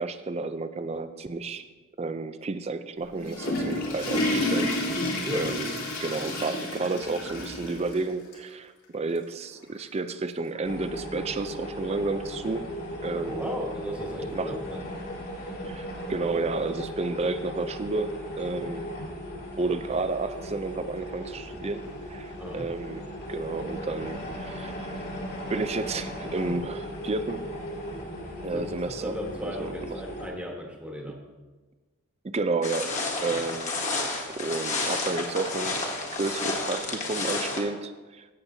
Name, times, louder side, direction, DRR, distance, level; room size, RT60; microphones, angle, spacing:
voice 1, 0.0-1.6 2.0-4.8 5.3-5.7 6.0-12.6 13.0-13.5 14.3-14.5 15.6-18.9 19.6-21.8 22.1-23.0 23.3-25.0 25.5-27.4 28.4-29.1 29.4-29.9 32.2-32.9 33.2-33.7 34.4-35.8 36.2-38.3, right 3 dB, 30° right, 11 dB, 0.4 m, -31 dB
Water / Toilet flush, 3.0-8.0 8.3-8.4 9.2-9.3 10.5-10.6, left 1 dB, 75° left, 3.0 m, -30 dB
sound 1, 10.6-30.3, equal, 50° left, 2.0 m, -37 dB
voice 2, 13.2-14.9 15.3-15.6 22.4-22.7 28.5-31.2 33.3-33.4, equal, 5° right, 0 dB, 1.2 m, -36 dB
sound 2, 32.6-37.6, left 3 dB, 30° left, 1.4 m, -31 dB
16.0 x 7.1 x 2.7 m, 1.3 s
head